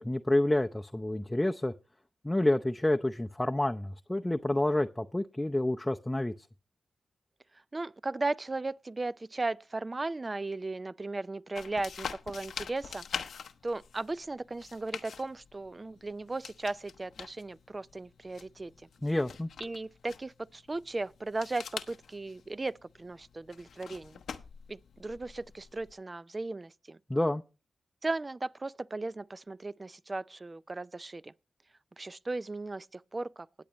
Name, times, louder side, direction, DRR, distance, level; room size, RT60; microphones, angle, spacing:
voice 1, 0.0-1.7 2.2-6.3 19.0-19.5 27.1-27.4, left 1 dB, 15° left, 0.6 m, -28 dB
voice 2, 7.7-13.0 13.6-18.7 19.6-24.2 24.7-27.0 28.0-31.3 32.0-33.5, right 2 dB, 35° right, 0.5 m, -36 dB
sound 1, 11.5-25.9, left 6 dB, 80° left, 0.8 m, -45 dB
19.0 x 8.1 x 3.0 m
supercardioid pair, 45°, 0 cm